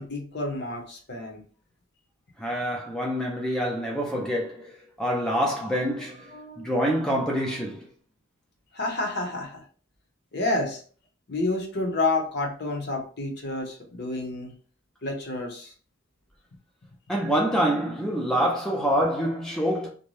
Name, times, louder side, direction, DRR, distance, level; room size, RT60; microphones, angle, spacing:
voice 1, 0.0-1.4 5.9-6.7 8.7-9.6 10.3-10.8 11.3-14.5 15.0-15.7, left 2 dB, 55° left, 0.8 m, -30 dB
voice 2, 2.4-4.7 5.0-6.3 6.6-7.9 17.1-19.9, equal, 5° left, 0.5 m, -26 dB
2.6 x 2.2 x 3.1 m
head